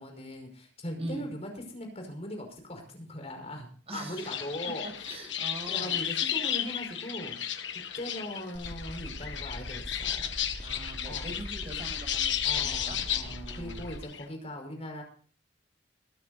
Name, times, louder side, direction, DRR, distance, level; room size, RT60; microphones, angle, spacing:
voice 1, 0.0-5.4 5.6-7.4 7.7-10.3 11.1-11.3 12.4-15.0, left 1 dB, 35° left, 3 dB, 5.4 m, -40 dB
voice 2, 3.9-4.3 4.6-6.0 10.6-13.0 13.2-13.9, right 2 dB, 35° right, 3 dB, 7.1 m, -42 dB
sound 1, 4.2-14.2, left 10 dB, 85° left, 1.6 m, -33 dB
sound 2, 8.5-14.0, equal, 15° left, 2.9 m, -42 dB
22.0 x 14.0 x 2.7 m, 0.43 s
head